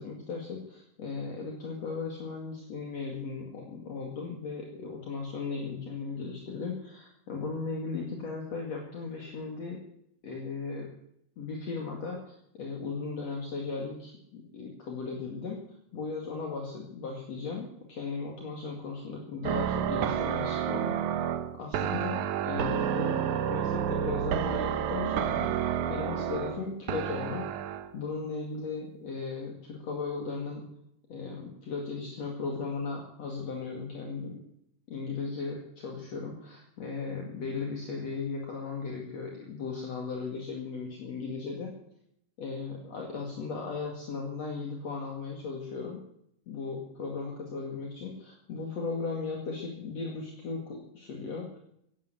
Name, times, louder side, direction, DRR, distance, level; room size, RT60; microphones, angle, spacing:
voice 1, 0.0-9.8 10.2-10.9 11.4-15.6 15.9-20.9 21.6-25.5 25.9-27.5 27.9-30.6 31.1-34.4 34.9-41.7 42.4-46.0 46.5-51.6, left 4 dB, 55° left, 0 dB, 3.3 m, -36 dB
sound 1, 19.4-27.9, right 9 dB, 70° right, 2.3 m, -30 dB
16.0 x 11.0 x 8.0 m, 0.72 s
omnidirectional pair, 3.8 m